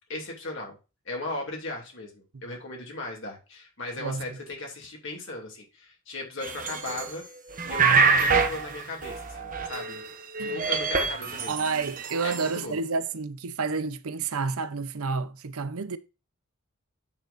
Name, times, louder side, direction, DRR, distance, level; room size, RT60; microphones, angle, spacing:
voice 1, 0.1-0.8 1.0-7.3 7.6-10.0 10.4-11.7 12.2-12.8, left 2 dB, 60° left, 2.7 m, -37 dB
sound 1, 6.4-7.2 7.5-10.1 10.3-12.5, right 5 dB, 40° right, 1.1 m, -26 dB
voice 2, 11.5-16.0, right 4 dB, 90° right, 0.8 m, -30 dB
8.8 x 6.5 x 2.6 m
head